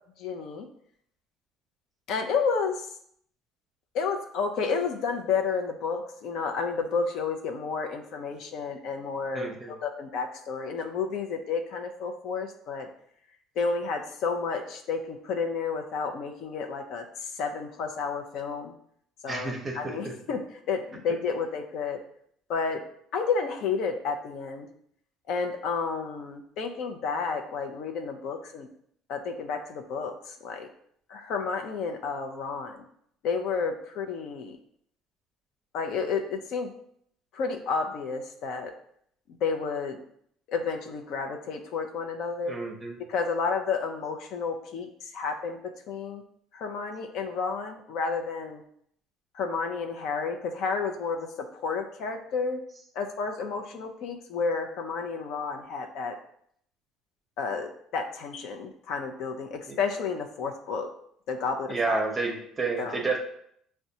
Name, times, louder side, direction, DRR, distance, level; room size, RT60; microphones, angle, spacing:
voice 1, 0.2-0.7 2.1-2.8 3.9-12.9 13.6-18.7 19.2-20.4 20.7-22.0 22.5-22.8 23.1-24.7 25.3-28.7 29.1-30.7 31.1-32.8 33.2-34.6 35.7-36.7 37.3-38.7 39.4-40.0 40.5-42.6 43.1-46.2 46.5-48.6 49.3-52.6 53.0-56.2 57.4-60.9 61.3-62.0 62.8-63.0, left 5 dB, 65° left, 4 dB, 0.5 m, -31 dB
voice 2, 9.3-9.7 19.3-20.1 42.5-43.0 59.7-59.8 61.7-63.2, right 3 dB, 20° right, 2 dB, 0.7 m, -30 dB
5.9 x 2.2 x 2.7 m, 0.67 s
cardioid pair, 130°, 0 cm